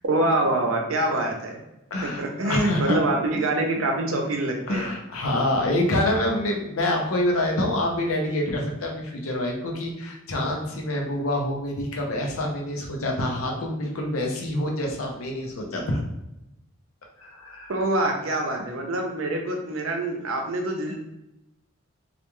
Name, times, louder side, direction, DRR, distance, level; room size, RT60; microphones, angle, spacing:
voice 1, 0.1-1.6 2.0-4.9 17.7-21.0, right 1 dB, 70° right, 2 dB, 0.5 m, -25 dB
voice 2, 1.9-3.0 4.7-16.0 17.2-17.7, left 1 dB, 80° left, 1 dB, 0.6 m, -26 dB
2.4 x 2.2 x 2.9 m, 0.88 s
head